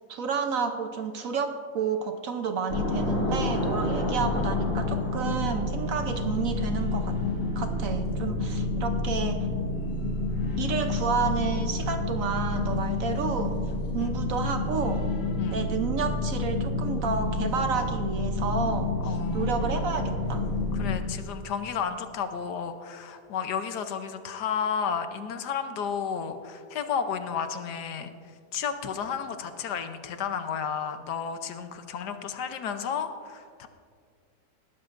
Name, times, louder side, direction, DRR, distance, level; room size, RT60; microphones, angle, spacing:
voice 1, 0.1-7.2 7.6-9.5 10.6-13.5 13.9-15.1 15.5-20.5, right 5 dB, 60° right, 6 dB, 1.0 m, -30 dB
sound 1, 2.7-21.0, left 2 dB, 45° left, 3.0 m, -29 dB
voice 2, 19.0-19.5 20.7-28.1 28.5-33.7, left 7 dB, 75° left, 8 dB, 1.3 m, -32 dB
19.0 x 12.5 x 2.5 m, 2.1 s
omnidirectional pair, 1.8 m